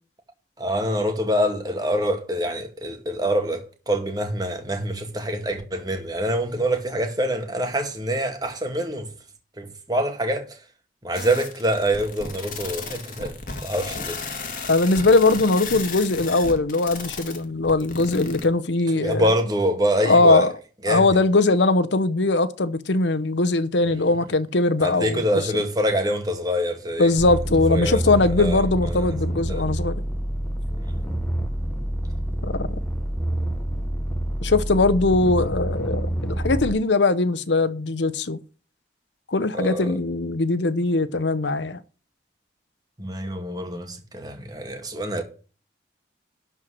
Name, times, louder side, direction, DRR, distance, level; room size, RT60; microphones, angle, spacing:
voice 1, 0.6-9.1 9.6-10.5 11.0-13.3 13.6-14.2 19.0-20.5 20.8-21.1 23.9-24.0 24.8-27.1 27.7-28.0 28.4-28.6 28.9-29.1 29.5-29.6 39.5-39.9 43.0-45.2, equal, 20° right, 2.0 m, -25 dB
sound 1, 11.1-18.4, left 4 dB, 45° left, 2.5 m, -34 dB
voice 2, 14.7-19.3 20.0-20.5 20.9-25.4 27.0-30.0 32.4-32.8 34.4-38.4 39.3-41.8, left 2 dB, 75° left, 0.9 m, -20 dB
sound 2, 27.2-36.7, right 1 dB, 5° left, 1.3 m, -27 dB
12.0 x 4.6 x 8.0 m
head